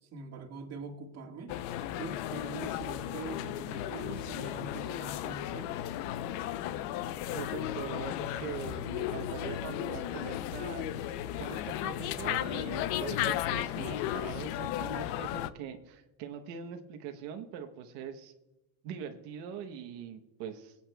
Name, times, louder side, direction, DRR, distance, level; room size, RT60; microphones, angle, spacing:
voice 1, 0.0-1.5 1.9-5.8, right 3 dB, 40° right, 3 dB, 1.7 m, -43 dB
sound 1, 1.5-15.5, left 12 dB, 90° left, 0.7 m, -35 dB
voice 2, 7.3-10.9 11.4-18.3 18.8-20.8, right 8 dB, 85° right, 4 dB, 1.0 m, -42 dB
22.0 x 8.5 x 2.3 m, 1.0 s
cardioid pair, 150°, 40 cm